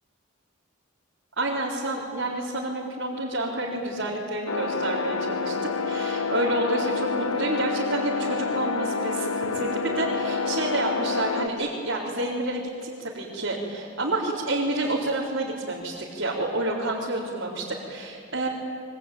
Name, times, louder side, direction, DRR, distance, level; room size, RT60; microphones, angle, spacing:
voice 1, 1.4-5.5 5.8-18.5, right 2 dB, 60° right, -6 dB, 4.2 m, -29 dB
sound 1, 4.5-11.5, left 4 dB, 90° left, 1.2 m, -28 dB
26.0 x 24.0 x 9.2 m, 2.2 s
head